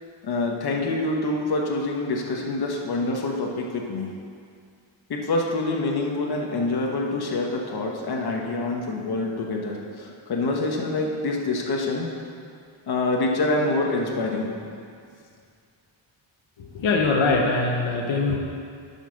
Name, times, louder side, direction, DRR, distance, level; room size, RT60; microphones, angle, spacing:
voice 1, 0.2-4.1 5.1-12.1 12.9-14.6, left 2 dB, 55° left, 0 dB, 1.2 m, -26 dB
voice 2, 16.6-18.4, left 3 dB, 80° left, 0 dB, 1.2 m, -22 dB
9.9 x 5.5 x 6.4 m, 2.3 s
wide cardioid pair, 145°, 47 cm